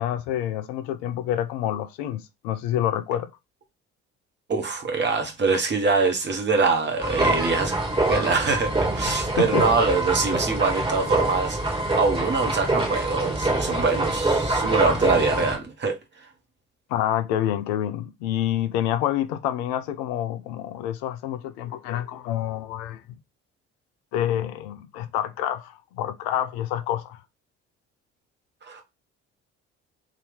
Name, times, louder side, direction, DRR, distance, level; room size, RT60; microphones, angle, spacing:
voice 1, 0.0-3.3 9.4-9.7 16.9-23.0 24.1-27.2, left 11 dB, 60° left, 0.5 m, -27 dB
voice 2, 4.5-7.7 8.1-16.0 28.7-28.8, right 4 dB, 30° right, 1.3 m, -24 dB
sound 1, 7.0-15.6, right 2 dB, 15° right, 1.5 m, -25 dB
3.8 x 2.7 x 3.4 m
figure-of-eight pair, 50°, 35 cm